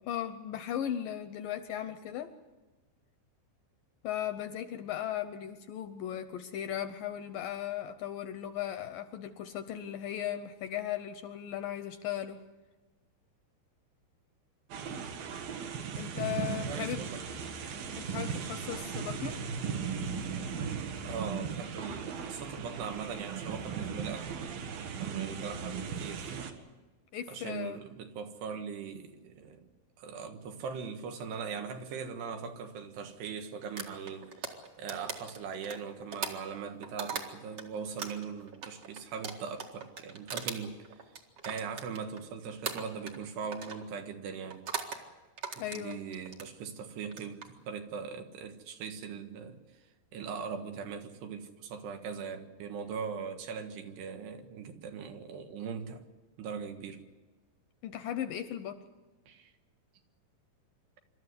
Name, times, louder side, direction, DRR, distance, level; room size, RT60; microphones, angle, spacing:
voice 1, 0.0-2.3 4.0-12.4 16.0-17.0 18.0-19.4 27.1-27.8 45.6-46.0 57.8-58.8, left 10 dB, 75° left, 2.1 m, -37 dB
sound 1, 14.7-26.5, right 6 dB, 65° right, 3.2 m, -37 dB
voice 2, 14.8-15.1 16.7-17.2 18.6-18.8 21.1-24.3 25.0-26.5 27.3-29.7 30.0-41.0 41.5-44.6 45.5-49.6 50.1-56.0 56.4-57.0 59.3-59.5, right 6 dB, 85° right, 3.7 m, -40 dB
sound 2, 33.8-37.6 38.0-42.3 42.6-43.2 43.5-43.8 44.5-45.0 45.4-46.5 47.0-47.5, right 6 dB, 45° right, 2.3 m, -39 dB
26.0 x 13.0 x 9.7 m
omnidirectional pair, 4.7 m